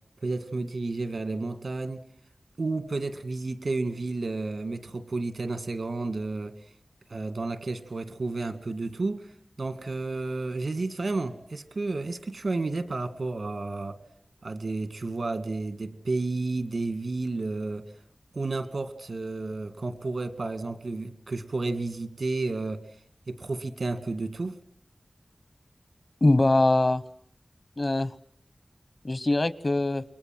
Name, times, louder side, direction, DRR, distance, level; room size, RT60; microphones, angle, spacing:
voice 1, 0.2-2.0 2.6-6.5 7.1-9.3 9.6-14.0 14.4-17.9 18.3-22.8 23.3-24.6, right 3 dB, 85° right, 2.1 m, -31 dB
voice 2, 26.2-27.0 27.8-28.1 29.0-30.0, left 2 dB, 50° left, 1.1 m, -22 dB
29.0 x 22.5 x 7.7 m
wide cardioid pair, 55°, 0 cm